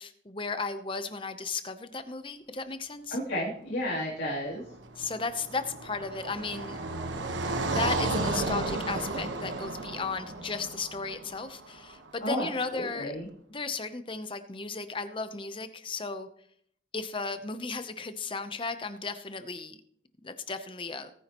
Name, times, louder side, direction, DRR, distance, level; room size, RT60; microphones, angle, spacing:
voice 1, 0.0-3.2 5.0-6.8 7.4-13.1 13.5-16.3 16.9-19.8 20.2-21.1, left 4 dB, 30° left, 10 dB, 0.8 m, -35 dB
voice 2, 3.1-4.6 12.2-13.3, equal, 80° left, -6 dB, 3.2 m, -32 dB
Car passing by, 4.7-11.9, right 2 dB, 90° right, 1.2 m, -33 dB
18.5 x 9.6 x 3.0 m, 0.68 s
head